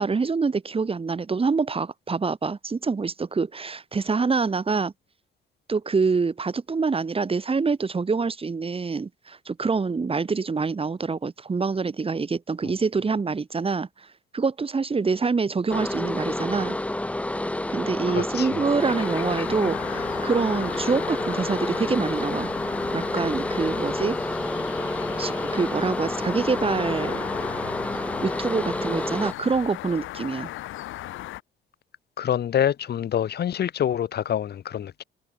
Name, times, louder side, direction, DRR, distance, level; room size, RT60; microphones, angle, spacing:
voice 1, 0.0-4.9 5.7-14.1 14.3-16.8 17.7-22.5 22.9-24.2 25.2-27.2 28.2-30.5, right 4 dB, 30° right, 1.6 m, -26 dB
sound 1, 15.7-29.3, left 1 dB, 5° left, 0.7 m, -29 dB
voice 2, 18.1-18.6 32.2-35.0, left 9 dB, 55° left, 1.0 m, -26 dB
sound 2, 18.8-31.4, left 15 dB, 85° left, 1.6 m, -37 dB
cardioid pair, 90°, 20 cm